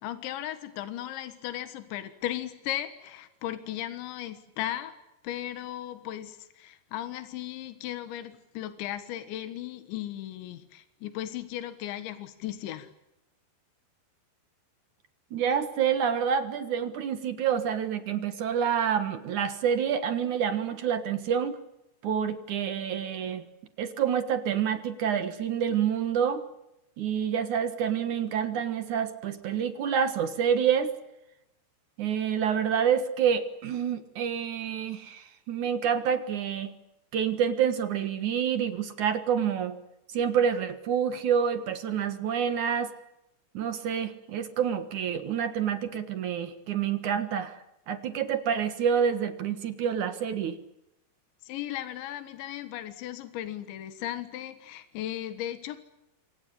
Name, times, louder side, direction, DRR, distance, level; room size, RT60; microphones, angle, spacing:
voice 1, 0.0-4.9 5.2-12.9 51.4-55.8, left 12 dB, 80° left, 10 dB, 3.8 m, -36 dB
voice 2, 15.3-21.6 22.0-23.4 23.8-26.4 27.0-30.9 32.0-36.7 37.1-39.8 40.1-42.9 43.5-47.6 47.9-50.6, right 8 dB, 60° right, 10 dB, 2.2 m, -28 dB
27.5 x 24.5 x 8.5 m, 0.88 s
omnidirectional pair, 5.2 m